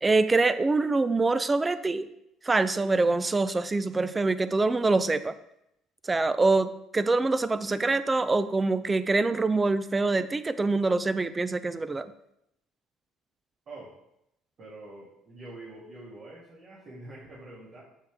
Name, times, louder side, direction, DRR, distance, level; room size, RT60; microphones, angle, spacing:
voice 1, 0.0-2.1 2.4-5.3 6.1-12.1, right 3 dB, 20° right, 13 dB, 0.5 m, -25 dB
voice 2, 14.6-17.8, right 2 dB, 50° right, -6 dB, 2.5 m, -45 dB
7.3 x 6.4 x 3.5 m, 0.80 s
supercardioid pair, 70°, 0 cm